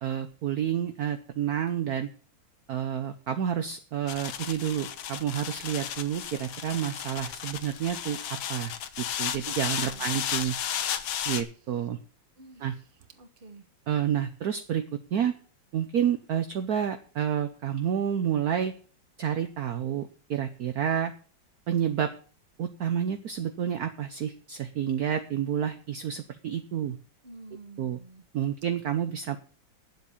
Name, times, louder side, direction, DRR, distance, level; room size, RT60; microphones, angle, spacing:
voice 1, 0.0-2.1 2.7-8.2 8.5-10.5 11.2-12.0 12.6-12.7 13.9-15.3 15.7-18.7 19.2-21.1 21.7-22.1 22.6-27.0 27.8-28.0 28.3-29.4, right 9 dB, 60° right, 8 dB, 1.1 m, -29 dB
sound 1, 4.1-11.4, left 9 dB, 80° left, 1.7 m, -34 dB
voice 2, 9.5-10.1 12.4-13.6 27.2-28.2, right 2 dB, 30° right, 7 dB, 1.3 m, -50 dB
9.3 x 7.8 x 7.1 m, 0.40 s
omnidirectional pair, 2.1 m